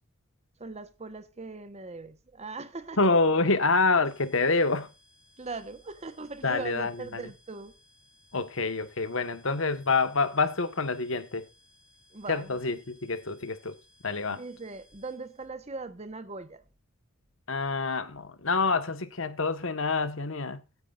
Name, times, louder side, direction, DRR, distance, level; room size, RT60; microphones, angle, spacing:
voice 1, 0.6-3.1 5.4-7.7 12.1-12.6 14.3-16.6, right 3 dB, 30° right, 1.2 m, -40 dB
voice 2, 3.0-4.9 6.4-7.3 8.3-11.5 12.3-13.8 14.0-14.4 17.5-20.6, left 3 dB, 65° left, 1.5 m, -27 dB
sound 1, 4.0-15.5, left 2 dB, 35° left, 6.7 m, -62 dB
17.0 x 9.9 x 2.5 m
head